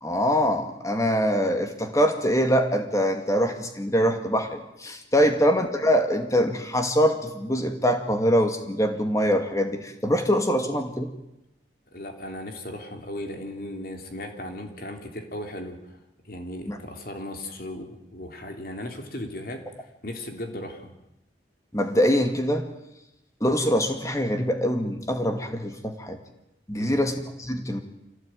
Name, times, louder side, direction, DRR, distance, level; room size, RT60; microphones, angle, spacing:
voice 1, 0.0-11.1 16.7-16.8 21.7-22.7 23.4-26.2 26.7-27.8, equal, 15° left, 6 dB, 2.2 m, -24 dB
voice 2, 11.9-16.0 16.2-19.6 20.0-20.9 26.7-27.1, left 1 dB, 50° left, 4 dB, 3.4 m, -36 dB
25.5 x 17.0 x 9.2 m, 0.91 s
head